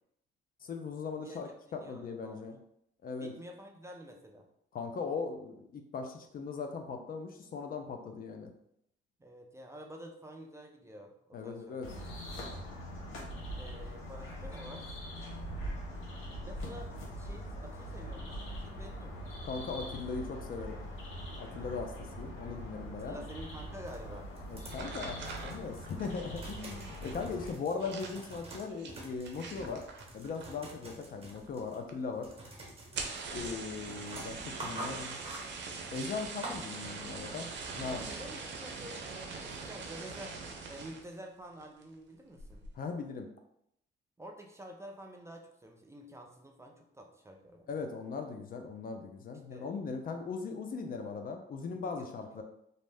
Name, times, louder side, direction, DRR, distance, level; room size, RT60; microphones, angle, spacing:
voice 1, 0.6-2.6 3.0-3.3 4.7-8.5 11.3-11.9 19.4-20.8 21.4-23.2 24.5-29.8 30.1-32.3 33.3-35.2 35.9-37.5 37.8-38.0 42.7-43.3 47.7-52.4, left 4 dB, 45° left, 4 dB, 0.4 m, -39 dB
voice 2, 1.8-2.5 3.2-4.5 9.2-11.8 13.6-15.0 16.4-19.3 22.8-24.3 37.8-40.4 40.7-42.6 44.2-47.7 49.5-49.7 51.8-52.4, equal, 15° right, 2 dB, 0.4 m, -49 dB
sound 1, 11.8-27.5, equal, 90° left, 0.8 m, -42 dB
sound 2, 23.8-36.6, right 2 dB, 30° right, 1.0 m, -48 dB
sound 3, 24.7-30.8 31.1-31.6 31.9-32.0 32.2-32.3 32.8-41.1 41.6-42.0 42.4-42.7, right 4 dB, 65° right, 0.5 m, -43 dB
2.6 x 2.0 x 3.3 m, 0.74 s
cardioid pair, 90°, 20 cm